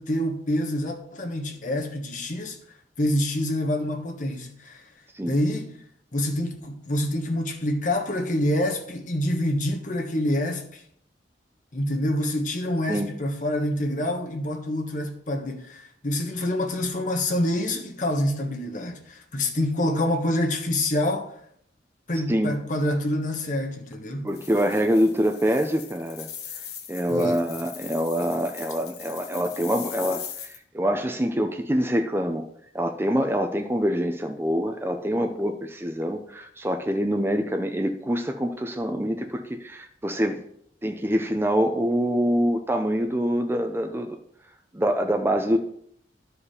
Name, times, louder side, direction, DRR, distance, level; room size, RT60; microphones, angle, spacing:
voice 1, 0.0-2.6 3.0-4.8 5.2-5.8 6.1-10.8 11.7-21.3 22.1-24.3 27.1-27.4, left 1 dB, 45° left, 1.3 m, -27 dB
voice 2, 24.2-26.3 26.9-32.4 32.7-40.4 40.8-44.2 44.7-45.6, equal, 15° right, 0.6 m, -25 dB
sound 1, 24.3-30.6, left 8 dB, 65° left, 1.2 m, -40 dB
12.5 x 4.9 x 4.9 m
head